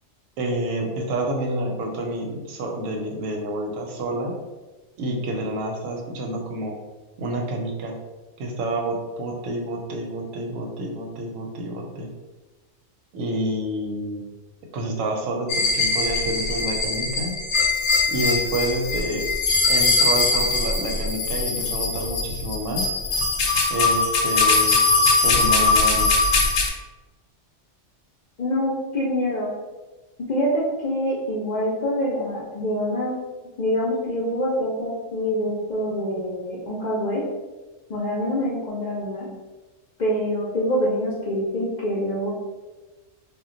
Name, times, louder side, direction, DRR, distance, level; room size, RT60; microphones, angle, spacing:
voice 1, 0.4-4.3 5.0-6.8 7.2-8.0 8.4-12.1 13.1-14.2 14.7-17.4 18.1-19.2 19.7-22.9 23.7-24.8 25.2-26.1, right 1 dB, 85° right, 2 dB, 1.0 m, -28 dB
sound 1, 15.5-26.7, left 3 dB, 85° left, 1.0 m, -21 dB
voice 2, 28.4-29.5 30.3-33.1 33.6-37.2 37.9-39.3 40.0-42.3, equal, 55° left, -6 dB, 0.5 m, -25 dB
2.2 x 2.2 x 3.7 m, 1.2 s
omnidirectional pair, 1.3 m